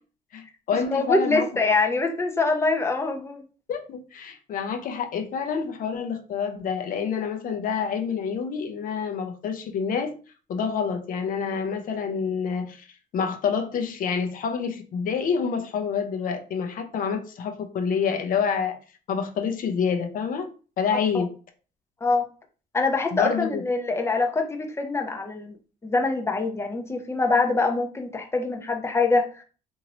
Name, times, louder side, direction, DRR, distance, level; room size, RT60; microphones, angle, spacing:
voice 1, 0.3-1.5 3.7-10.1 10.5-12.9 13.1-18.8 19.1-20.5 20.8-21.3 23.1-23.6, left 6 dB, 55° left, 0.7 m, -27 dB
voice 2, 0.9-3.4 21.1-21.2 22.0-22.2 22.7-25.6 25.8-29.4, left 3 dB, 15° left, 0.6 m, -24 dB
2.9 x 2.6 x 2.9 m
cardioid pair, 110°, 17 cm